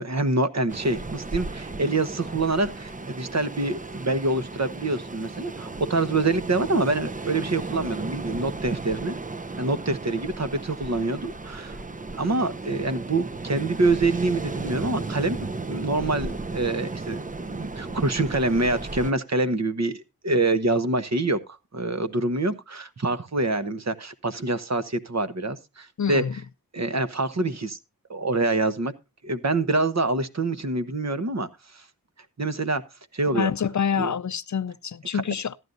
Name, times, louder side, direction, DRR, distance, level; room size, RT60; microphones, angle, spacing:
voice 1, 0.0-9.1 9.5-11.8 12.2-15.4 15.6-17.2 17.5-21.4 21.7-26.2 26.7-27.8 28.1-28.9 29.2-31.5 31.7-31.8 32.4-32.8 33.1-33.5 34.0-34.1 35.1-35.2, right 2 dB, 45° right, 1.1 m, -26 dB
Ocean, 0.7-19.1, right 3 dB, 20° right, 0.6 m, -35 dB
voice 2, 26.0-26.4 33.3-35.6, left 7 dB, 55° left, 0.5 m, -27 dB
14.5 x 11.0 x 2.5 m
wide cardioid pair, 75°, 36 cm